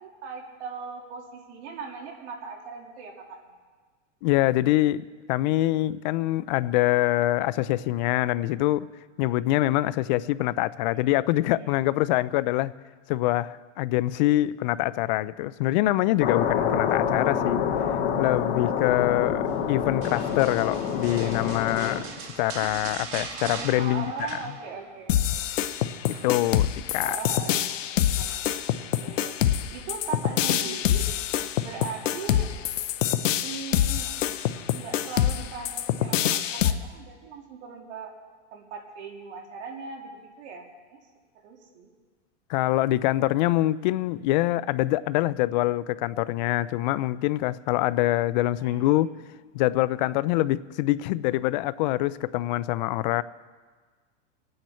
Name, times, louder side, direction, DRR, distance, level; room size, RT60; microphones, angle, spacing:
voice 1, 0.0-3.4 11.6-11.9 18.8-19.5 23.8-25.3 27.0-27.8 28.2-28.5 29.0-31.1 31.6-32.5 33.4-34.1 34.7-38.1 38.5-41.0 41.4-41.9 48.6-49.1, right 5 dB, 60° right, 0 dB, 3.0 m, -39 dB
voice 2, 4.2-8.9 9.2-12.7 13.1-17.6 18.2-24.3 26.2-27.2 42.5-49.1 49.5-53.2, left 16 dB, 40° left, 17 dB, 0.4 m, -25 dB
sound 1, 16.2-22.0, left 7 dB, 60° left, 2.6 m, -27 dB
sound 2, 20.0-25.0 25.3-25.6 26.1-27.1 28.2-28.7 29.2-29.4, right 5 dB, 35° right, 1.9 m, -40 dB
sound 3, 25.1-36.7, left 11 dB, 85° left, 0.9 m, -25 dB
25.0 x 9.4 x 4.4 m, 1.4 s
supercardioid pair, 145°, 37 cm